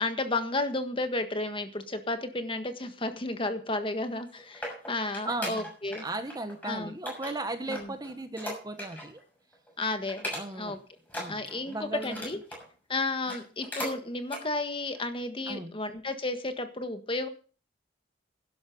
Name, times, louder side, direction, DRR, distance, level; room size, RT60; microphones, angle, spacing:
voice 1, 0.0-6.0 6.6-7.0 7.7-7.9 9.8-10.8 11.3-12.4 12.9-17.3, left 2 dB, 30° left, 8 dB, 1.6 m, -32 dB
sound 1, 4.1-6.0 6.3-6.7 7.1-9.2 9.5-9.7 10.1-10.7 11.1-12.7 13.1-14.0 14.3-14.4 15.0-15.1, equal, 10° left, 6.6 m, -39 dB
voice 2, 5.2-5.7 6.0-9.2 10.3-10.8 11.1-12.2 15.5-15.7, right 2 dB, 20° right, 9 dB, 1.2 m, -36 dB
11.5 x 11.5 x 5.4 m, 0.38 s
head